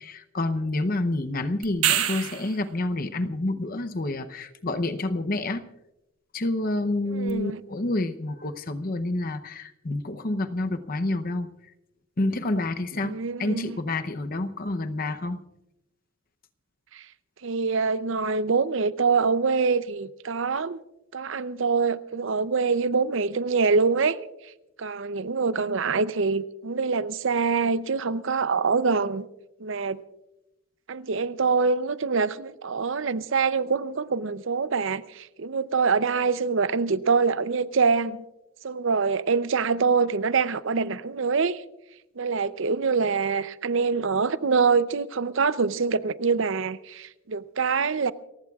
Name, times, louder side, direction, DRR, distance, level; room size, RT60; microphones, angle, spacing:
voice 1, 0.0-5.6 6.3-11.5 12.2-15.4, left 2 dB, 40° left, 0.7 m, -28 dB
sound 1, 1.6-2.6 7.3-7.4, right 11 dB, 85° right, 1.2 m, -25 dB
voice 2, 7.1-7.6 13.0-13.8 16.9-17.0 17.4-20.8 21.1-24.2 24.8-29.3 29.6-30.0 30.9-38.2 38.6-41.6 42.2-48.1, right 5 dB, 60° right, 0.6 m, -25 dB
29.0 x 15.5 x 2.4 m
head